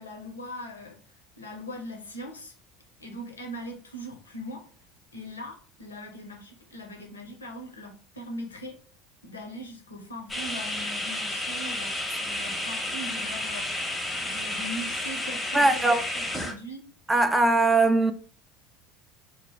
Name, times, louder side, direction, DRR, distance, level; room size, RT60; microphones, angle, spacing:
voice 1, 0.0-2.5 3.0-4.7 5.1-8.8 9.2-13.7 14.2-16.9, equal, 90° left, 0.6 m, -40 dB
sound 1, 10.3-16.5, left 1 dB, 10° left, 0.7 m, -31 dB
voice 2, 15.5-16.0 17.1-18.1, right 2 dB, 10° right, 0.3 m, -20 dB
2.3 x 2.0 x 3.3 m
hypercardioid pair, 75°, 0 cm